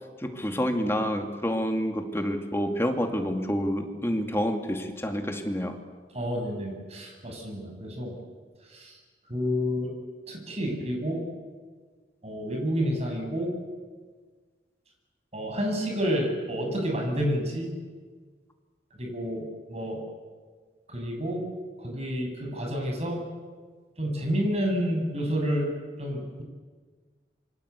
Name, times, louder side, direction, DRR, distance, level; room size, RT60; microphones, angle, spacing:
voice 1, 0.2-5.7, equal, 15° left, 4 dB, 2.3 m, -28 dB
voice 2, 6.1-8.1 8.7-9.0 9.3-9.9 10.3-11.2 12.2-13.5 15.3-17.7 19.0-20.0 20.9-21.5 21.8-23.3 24.0-25.7 26.0-26.4, equal, 40° right, 2 dB, 7.2 m, -29 dB
27.0 x 24.5 x 8.3 m, 1.5 s
head